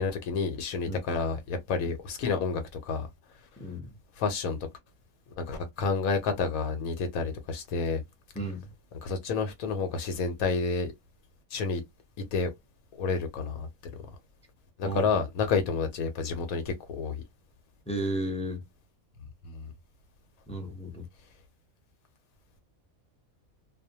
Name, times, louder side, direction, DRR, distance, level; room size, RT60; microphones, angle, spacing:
voice 1, 0.0-3.1 4.2-4.6 5.4-8.0 9.0-10.9 11.5-11.8 12.3-12.5 13.0-13.9 14.8-17.2 19.4-19.7, left 4 dB, 75° left, 1.1 m, -30 dB
voice 2, 8.3-8.7 14.8-15.0 17.9-18.6 20.5-21.1, right 1 dB, 5° left, 0.5 m, -33 dB
2.5 x 2.0 x 2.7 m
omnidirectional pair, 1.5 m